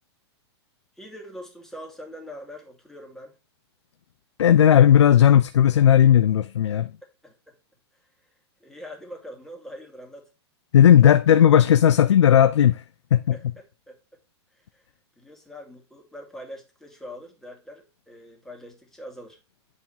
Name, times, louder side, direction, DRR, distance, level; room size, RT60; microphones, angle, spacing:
voice 1, 1.0-3.4 7.2-7.6 7.9-8.3 8.6-10.2 13.3-14.2 14.5-14.9 15.2-19.4, equal, 5° left, 2.3 m, -43 dB
voice 2, 4.4-6.9 10.7-12.8 13.1-13.3, left 10 dB, 90° left, 0.5 m, -15 dB
9.5 x 3.6 x 4.5 m
hypercardioid pair, 125°, 14 cm